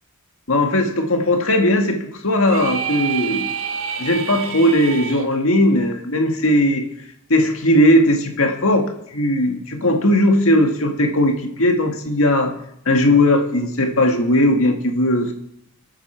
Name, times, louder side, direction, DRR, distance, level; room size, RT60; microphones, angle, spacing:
voice 1, 0.5-3.6 4.0-6.9 7.3-8.9 9.1-12.5 12.9-15.3, left 1 dB, 70° left, 4 dB, 1.8 m, -18 dB
sound 1, 2.5-5.3, right 7 dB, 65° right, 1.2 m, -28 dB
25.0 x 8.7 x 4.4 m, 0.78 s
head